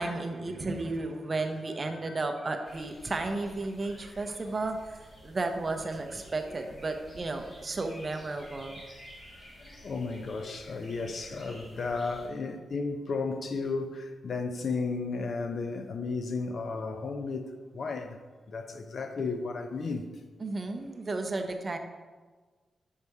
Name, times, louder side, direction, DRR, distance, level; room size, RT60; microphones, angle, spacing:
voice 1, 0.0-8.9 20.4-21.8, right 2 dB, 30° right, 0.6 m, -33 dB
sound 1, 2.6-12.3, equal, 30° left, 2.0 m, -51 dB
voice 2, 9.6-18.2 18.5-20.1 21.3-21.4, left 4 dB, 50° left, 0.5 m, -34 dB
6.6 x 5.5 x 4.7 m
wide cardioid pair, 170°, 0 cm